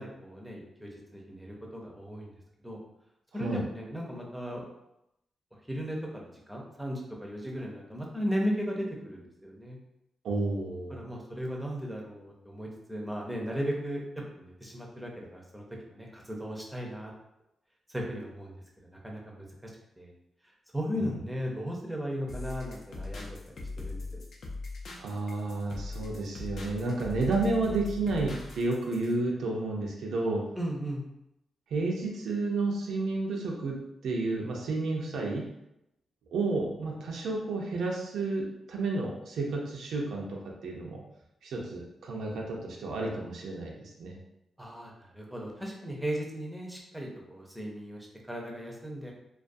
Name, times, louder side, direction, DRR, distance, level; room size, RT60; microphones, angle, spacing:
voice 1, 0.0-2.3 2.6-2.8 3.3-4.6 5.7-9.8 10.9-14.0 14.4-17.1 17.9-18.5 18.8-19.7 20.0-20.1 20.7-24.0 30.6-31.0 44.6-49.1, equal, 5° right, -2 dB, 0.5 m, -36 dB
voice 2, 10.2-11.1 21.0-21.1 25.0-30.4 31.7-33.8 34.0-35.5 36.3-41.0 41.4-44.2, right 3 dB, 85° right, -1 dB, 0.4 m, -31 dB
sound 1, 22.3-29.1, left 3 dB, 60° left, 0.4 m, -40 dB
2.3 x 2.2 x 2.5 m, 0.84 s
cardioid pair, 115°, 0 cm